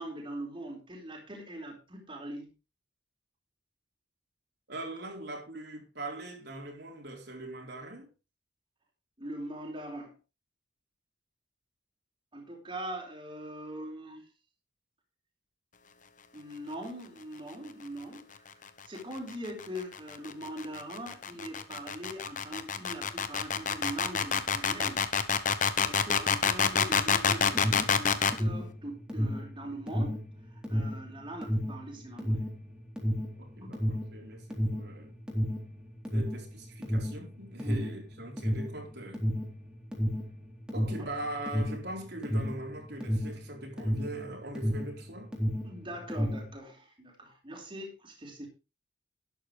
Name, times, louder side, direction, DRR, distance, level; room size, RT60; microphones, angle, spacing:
voice 1, 0.0-2.5 9.2-10.2 12.3-14.2 16.3-18.5 18.9-25.0 25.8-30.2 30.5-32.4 33.6-33.7 37.6-37.9 45.6-48.5, right 1 dB, 25° right, 4.1 m, -41 dB
voice 2, 4.7-8.1 33.4-35.2 36.1-39.3 40.7-45.3, right 1 dB, 60° right, 4.1 m, -41 dB
sound 1, 19.1-28.4, left 6 dB, 45° left, 1.1 m, -27 dB
Alarm, 27.4-45.0 45.3-46.5, equal, 5° right, 3.6 m, -31 dB
12.5 x 11.0 x 3.3 m
head